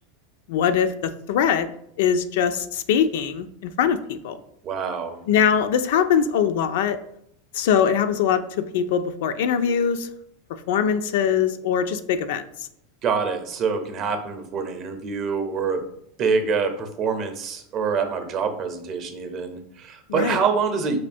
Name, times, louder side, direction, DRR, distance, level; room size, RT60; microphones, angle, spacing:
voice 1, 0.5-1.7 2.0-4.4 5.3-7.0 7.5-10.1 10.7-12.4 20.1-20.4, left 8 dB, 70° left, 10 dB, 0.3 m, -22 dB
voice 2, 4.6-5.2 13.0-15.8 16.2-21.0, right 5 dB, 45° right, 6 dB, 0.7 m, -25 dB
4.3 x 2.7 x 2.5 m, 0.72 s
hypercardioid pair, 95°, 0 cm